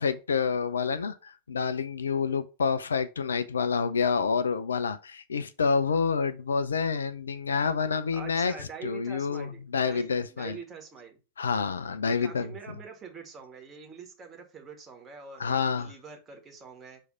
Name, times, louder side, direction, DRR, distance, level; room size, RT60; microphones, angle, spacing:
voice 1, 0.0-10.6 11.4-12.5 15.4-15.9, left 5 dB, 70° left, 0.5 m, -28 dB
voice 2, 8.1-11.2 12.0-17.0, right 6 dB, 20° right, 1.8 m, -44 dB
6.3 x 3.3 x 5.5 m
figure-of-eight pair, 90°, 0 cm